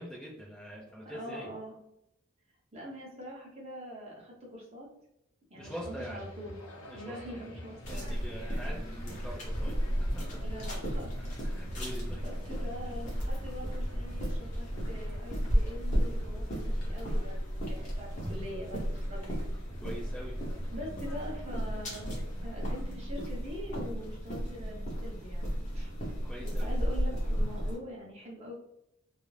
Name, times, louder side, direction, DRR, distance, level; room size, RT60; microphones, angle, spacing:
voice 1, 0.0-1.5 5.5-6.3 6.9-7.3 7.9-9.8 10.3-10.4 11.2-12.3 18.2-18.3 19.8-20.4 26.2-26.7, equal, 5° left, -6 dB, 0.4 m, -43 dB
voice 2, 1.1-1.8 2.7-4.9 5.5-6.5 6.9-8.1 10.4-11.1 12.2-19.6 20.7-22.1 22.4-25.9 26.4-28.5, equal, 30° right, -3 dB, 0.7 m, -44 dB
sound 1, 5.6-22.9, left 1 dB, 90° left, 0.6 m, -50 dB
sound 2, 7.8-27.8, equal, 35° left, 0.8 m, -34 dB
2.4 x 2.0 x 3.1 m, 0.82 s
head